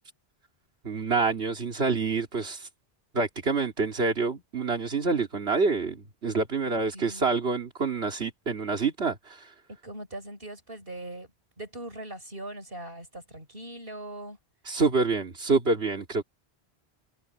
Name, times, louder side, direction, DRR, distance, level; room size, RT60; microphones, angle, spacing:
voice 1, 0.8-2.7 3.1-9.5 14.6-16.2, right 4 dB, 80° right, 2.8 m, -27 dB
voice 2, 6.9-7.3 9.7-11.3 11.6-14.4, right 1 dB, 60° right, 6.4 m, -41 dB
omnidirectional pair, 1.1 m